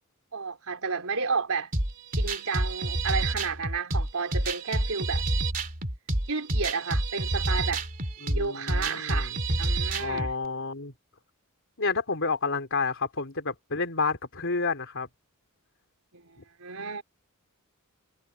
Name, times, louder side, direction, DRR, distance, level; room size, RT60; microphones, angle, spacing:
voice 1, 0.3-1.7 2.2-5.2 6.3-7.8 8.3-9.3 9.6-10.3 16.1-17.0, right 4 dB, 70° right, 4.1 m, -32 dB
sound 1, 1.7-10.3, right 2 dB, 40° right, 2.9 m, -28 dB
voice 2, 8.2-9.4 10.0-10.9 11.8-15.1, left 4 dB, 60° left, 3.6 m, -30 dB
head